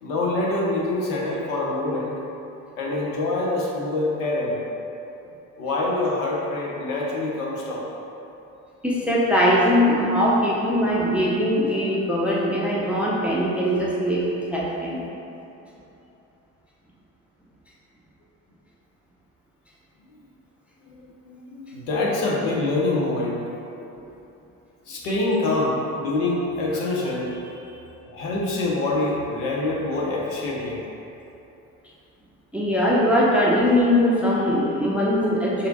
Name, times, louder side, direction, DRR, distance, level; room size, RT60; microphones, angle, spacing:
voice 1, 0.0-2.2 2.8-4.6 5.6-7.9 20.8-23.4 24.9-30.8, left 2 dB, 65° left, -3 dB, 0.8 m, -25 dB
voice 2, 8.8-15.0 32.5-35.7, equal, 5° right, -5 dB, 0.5 m, -21 dB
5.6 x 2.6 x 2.6 m, 2.9 s
figure-of-eight pair, 45°, 45 cm